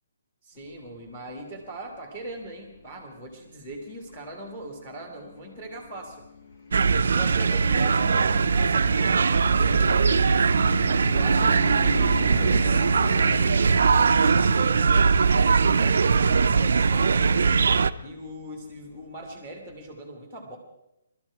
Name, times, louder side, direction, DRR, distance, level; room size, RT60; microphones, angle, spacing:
voice 1, 0.4-6.2 7.1-10.8 11.1-15.2 15.6-17.6 18.0-20.6, right 1 dB, 5° left, 1 dB, 1.6 m, -40 dB
sound 1, 0.6-19.9, left 4 dB, 50° left, 1.4 m, -41 dB
sound 2, 6.7-17.9, right 5 dB, 60° right, 0.5 m, -20 dB
18.5 x 13.0 x 4.7 m, 0.88 s
hypercardioid pair, 175°, 0 cm